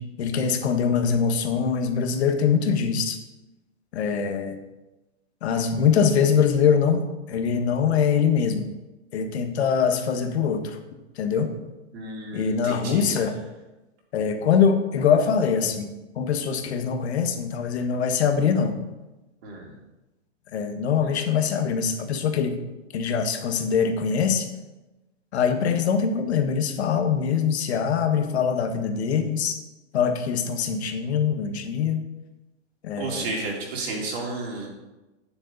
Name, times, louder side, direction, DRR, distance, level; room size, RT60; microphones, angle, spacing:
voice 1, 0.0-3.2 3.9-4.6 5.4-7.0 7.3-8.7 9.1-10.8 11.2-11.5 12.3-13.4 14.1-15.9 16.1-18.8 20.5-22.6 22.9-24.5 25.3-29.6 29.9-32.0 32.8-33.3, left 6 dB, 60° left, 6 dB, 1.6 m, -23 dB
voice 2, 11.9-13.1 19.4-19.7 33.0-34.7, right 3 dB, 55° right, -2 dB, 4.0 m, -32 dB
10.5 x 9.8 x 4.1 m, 1.1 s
hypercardioid pair, 155°, 37 cm